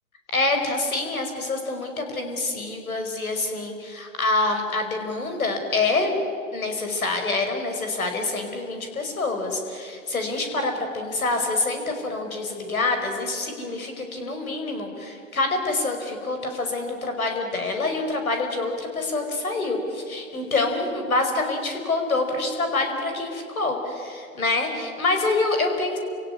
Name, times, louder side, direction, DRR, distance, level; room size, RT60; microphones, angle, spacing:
voice 1, 0.3-6.2 6.5-26.0, left 3 dB, 85° left, 5 dB, 5.4 m, -26 dB
30.0 x 17.5 x 9.8 m, 2.5 s
hypercardioid pair, 120°, 41 cm